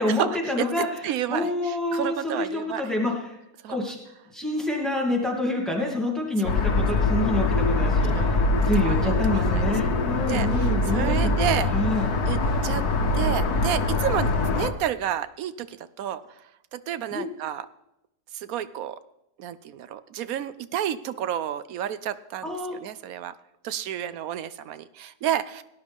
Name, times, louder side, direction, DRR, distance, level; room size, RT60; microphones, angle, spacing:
voice 1, 0.0-0.9 1.3-3.2 3.7-4.0 4.3-8.4 8.6-12.1 17.1-17.2 22.4-22.8, left 2 dB, ahead, -2 dB, 2.5 m, -27 dB
voice 2, 0.6-2.9 3.6-3.8 6.4-6.7 8.1-8.3 8.7-9.6 10.3-11.7 12.2-12.9 13.1-16.2 16.7-17.7 18.3-19.0 19.4-23.3 23.6-25.6, right 10 dB, 70° right, 14 dB, 1.0 m, -31 dB
sound 1, 6.4-14.7, left 2 dB, 75° left, 1.6 m, -23 dB
17.5 x 10.5 x 3.6 m, 0.88 s
omnidirectional pair, 1.7 m